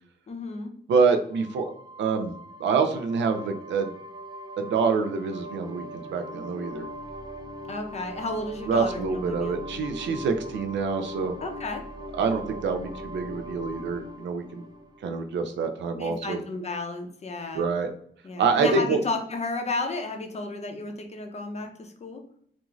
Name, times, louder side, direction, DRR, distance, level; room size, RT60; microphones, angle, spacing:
voice 1, 0.3-0.7 7.7-9.6 11.4-11.8 15.9-17.7 18.2-22.2, left 3 dB, 35° left, 4 dB, 0.6 m, -33 dB
voice 2, 0.9-1.7 2.0-2.3 2.6-3.9 4.6-6.9 8.7-11.3 12.2-14.6 15.0-16.4 17.5-17.9 18.4-19.0, right 5 dB, 90° right, 7 dB, 0.4 m, -26 dB
sound 1, 1.3-15.7, equal, 25° right, 0.4 m, -41 dB
2.5 x 2.4 x 3.0 m, 0.64 s
cardioid pair, 100°, 18 cm